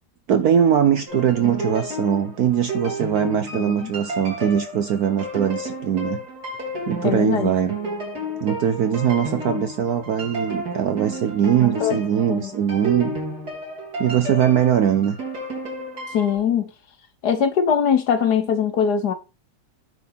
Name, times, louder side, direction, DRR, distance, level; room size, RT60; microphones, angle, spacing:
voice 1, 0.3-6.2 6.9-7.7 8.4-13.1 14.0-15.2, right 9 dB, 65° right, 1.0 m, -21 dB
sound 1, 1.1-16.4, right 1 dB, 45° right, 3.9 m, -32 dB
voice 2, 3.5-3.9 7.0-7.5 11.8-12.0 12.3-12.5 16.1-16.7 17.2-19.1, left 7 dB, 60° left, 1.3 m, -21 dB
9.4 x 3.9 x 5.5 m
omnidirectional pair, 2.2 m